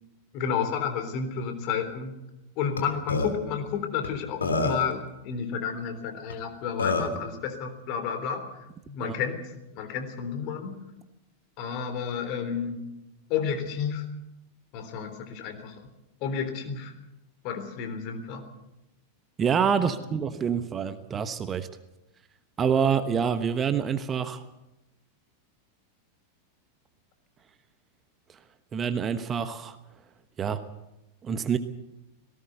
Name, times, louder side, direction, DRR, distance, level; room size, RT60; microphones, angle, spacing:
voice 1, 0.3-2.2 2.6-8.5 8.9-9.4 9.8-10.8 11.6-12.8 13.3-14.0 14.7-15.8 16.2-16.9 17.4-18.4 19.8-19.9, left 7 dB, 45° left, 7 dB, 3.6 m, -31 dB
Burping eructation, 2.8-2.9 3.1-3.3 4.0-4.1 4.4-4.9 6.3-6.4 6.8-7.2, left 3 dB, 75° left, 3.0 m, -26 dB
voice 2, 19.4-21.7 22.6-24.4 28.7-29.8 30.4-30.6 31.2-31.6, right 7 dB, 25° right, 11 dB, 1.2 m, -26 dB
18.0 x 18.0 x 8.0 m, 0.95 s
figure-of-eight pair, 90°, 0 cm